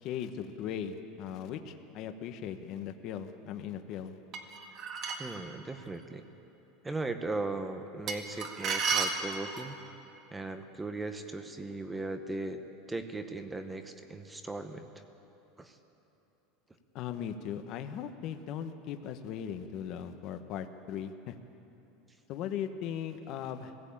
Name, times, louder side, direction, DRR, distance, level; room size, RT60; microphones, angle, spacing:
voice 1, 0.0-4.2 16.9-21.3 22.3-23.7, left 9 dB, 45° left, 7 dB, 1.1 m, -38 dB
sound 1, 4.3-5.4 8.1-9.7, right 5 dB, 35° right, 1.7 m, -32 dB
voice 2, 5.2-6.2 6.8-9.8 10.3-12.6 12.9-14.9 15.6-15.8, right 2 dB, 10° right, 7 dB, 0.9 m, -38 dB
20.0 x 16.0 x 8.8 m, 2.9 s
supercardioid pair, 155°, 0 cm